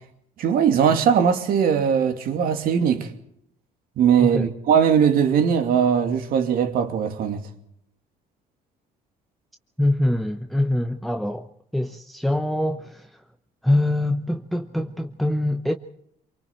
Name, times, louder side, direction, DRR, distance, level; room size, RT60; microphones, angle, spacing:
voice 1, 0.4-3.1 4.0-7.5, right 7 dB, 65° right, 2.9 m, -20 dB
voice 2, 4.2-4.5 9.8-13.2 13.6-15.7, left 1 dB, ahead, 0.9 m, -24 dB
28.0 x 23.5 x 4.5 m
cardioid pair, 135°, 16 cm